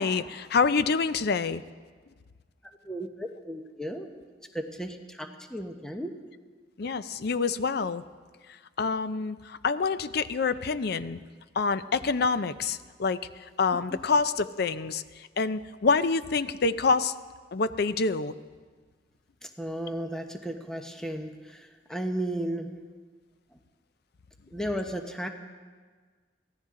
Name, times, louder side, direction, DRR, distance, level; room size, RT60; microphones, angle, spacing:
voice 1, 0.0-1.6 6.8-8.0 8.8-11.2 11.6-17.1 17.5-18.3, left 4 dB, 60° left, 14 dB, 0.5 m, -27 dB
voice 2, 2.8-4.1 4.5-6.1 13.9-14.0 19.4-22.7 24.5-25.3, right 1 dB, 5° left, 4 dB, 1.0 m, -34 dB
23.5 x 16.0 x 3.8 m, 1.5 s
head